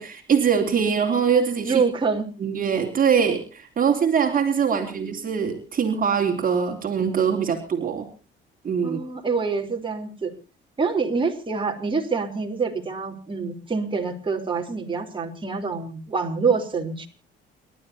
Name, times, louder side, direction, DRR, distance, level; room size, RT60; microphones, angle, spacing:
voice 1, 0.0-1.8 2.4-8.1 8.6-9.0, right 7 dB, 45° right, 2 dB, 3.3 m, -23 dB
voice 2, 1.6-2.3 4.7-5.1 8.8-10.3 10.8-17.1, right 5 dB, 25° right, 1 dB, 3.6 m, -26 dB
29.0 x 12.5 x 2.8 m, 0.35 s
cardioid pair, 95°, 20 cm